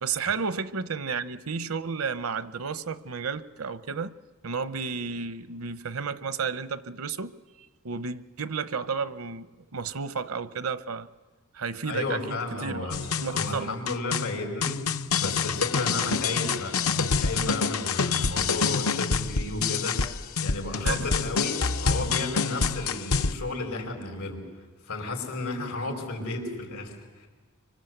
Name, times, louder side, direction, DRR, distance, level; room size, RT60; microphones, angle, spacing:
voice 1, 0.0-4.1 4.4-9.5 9.7-11.1 11.5-13.8 20.8-21.1, right 5 dB, 75° right, 0.8 m, -32 dB
voice 2, 11.8-13.0 13.2-14.8 15.2-20.0 20.4-24.4 24.8-27.3, left 2 dB, 90° left, 5.0 m, -33 dB
sound 1, 12.9-23.3, left 5 dB, 75° left, 0.8 m, -27 dB
25.0 x 24.5 x 7.9 m
head